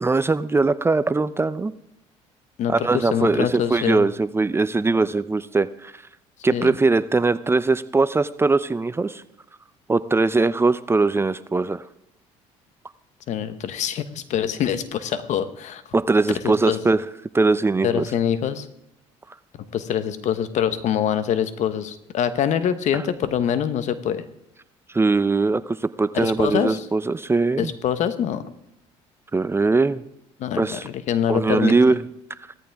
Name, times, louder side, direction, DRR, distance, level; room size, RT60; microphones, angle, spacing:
voice 1, 0.0-1.7 2.7-6.0 6.4-9.2 9.9-11.8 15.9-17.0 17.3-18.0 22.9-23.0 24.9-27.7 29.3-30.0 30.6-30.9 31.3-32.0 32.5-32.6, right 3 dB, 20° right, 14 dB, 0.6 m, -21 dB
voice 2, 2.6-4.0 6.5-6.8 13.3-15.8 16.4-16.8 17.8-18.7 19.7-24.2 26.1-26.8 27.6-28.4 30.4-31.7, left 9 dB, 60° left, 12 dB, 1.2 m, -24 dB
17.0 x 14.0 x 3.5 m, 0.80 s
supercardioid pair, 80°, 13 cm